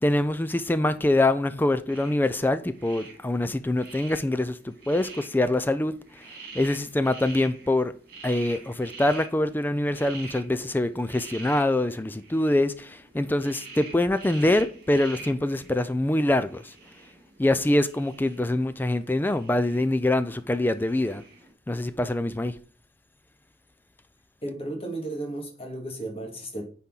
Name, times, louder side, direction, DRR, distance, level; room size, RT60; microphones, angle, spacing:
voice 1, 0.0-5.9 6.5-7.9 8.2-16.7 17.4-21.2 21.7-22.6, left 1 dB, 10° left, 0.3 m, -24 dB
sound 1, 1.9-21.5, right 3 dB, 50° right, 2.5 m, -46 dB
voice 2, 24.4-26.6, right 1 dB, 30° left, 2.0 m, -34 dB
9.4 x 4.3 x 3.9 m
head